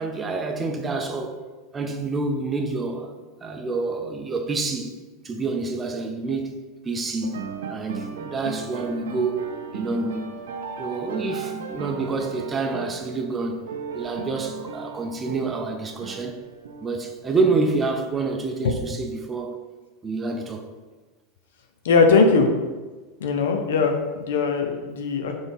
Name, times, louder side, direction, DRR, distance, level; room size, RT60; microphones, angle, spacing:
voice 1, 0.0-1.4 1.7-3.1 3.4-5.0 5.2-6.5 6.8-7.4 7.7-9.4 9.7-10.3 10.8-13.6 13.9-16.4 16.8-19.6 20.0-20.6, right 3 dB, 25° right, 0.6 m, -27 dB
sound 1, 7.2-18.5, right 5 dB, 85° right, 0.4 m, -37 dB
voice 2, 21.8-22.5 23.2-25.4, left 4 dB, 80° left, 0.6 m, -20 dB
4.0 x 3.5 x 3.5 m
hypercardioid pair, 100°, 0 cm